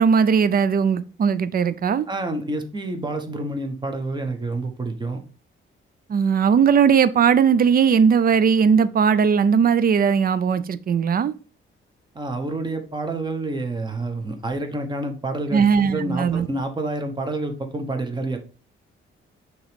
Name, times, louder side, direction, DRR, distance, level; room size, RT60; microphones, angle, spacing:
voice 1, 0.0-2.1 6.1-11.3 15.5-16.5, right 6 dB, 45° right, 0.5 m, -18 dB
voice 2, 2.1-5.2 12.1-15.6 15.9-18.4, right 2 dB, 20° right, 1.0 m, -28 dB
6.2 x 3.1 x 5.1 m
wide cardioid pair, 140°, 21 cm